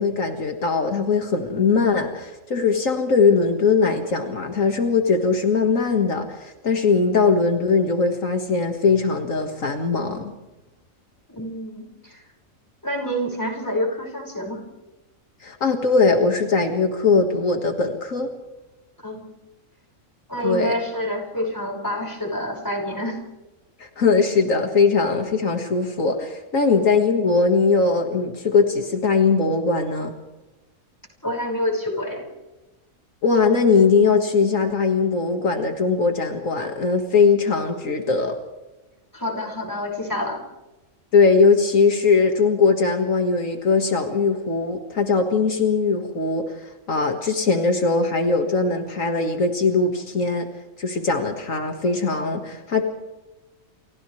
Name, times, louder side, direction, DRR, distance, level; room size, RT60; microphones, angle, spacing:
voice 1, 0.0-10.3 15.4-18.3 20.4-20.7 23.8-30.1 33.2-38.4 41.1-50.5 50.8-52.8, left 4 dB, 75° left, 4 dB, 2.2 m, -20 dB
voice 2, 11.3-12.2 12.8-14.6 19.0-19.3 20.3-23.2 31.2-32.2 39.1-40.4, left 1 dB, 15° left, 0 dB, 5.8 m, -27 dB
29.5 x 29.0 x 3.3 m, 1.1 s
omnidirectional pair, 1.4 m